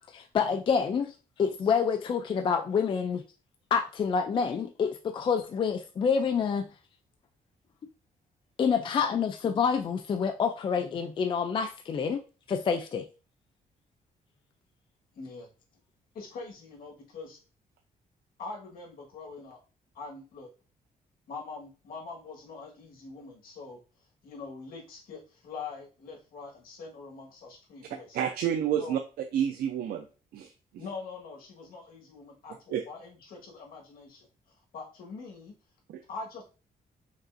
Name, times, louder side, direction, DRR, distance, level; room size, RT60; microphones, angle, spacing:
voice 1, 0.1-3.2 3.7-6.7 8.6-12.2 12.5-13.1, left 6 dB, 35° left, 6 dB, 0.3 m, -27 dB
voice 2, 15.1-15.5 16.1-17.4 18.4-19.6 19.9-20.5 21.3-23.8 24.2-28.2 28.7-29.0 30.8-34.3 34.7-35.5 36.1-36.4, left 4 dB, 80° left, -1 dB, 1.5 m, -43 dB
voice 3, 28.1-29.0 29.3-30.1 30.3-30.5 32.7-32.8 35.9-36.0, right 9 dB, 90° right, 5 dB, 0.4 m, -29 dB
5.4 x 2.4 x 2.5 m, 0.33 s
cardioid pair, 145°, 15 cm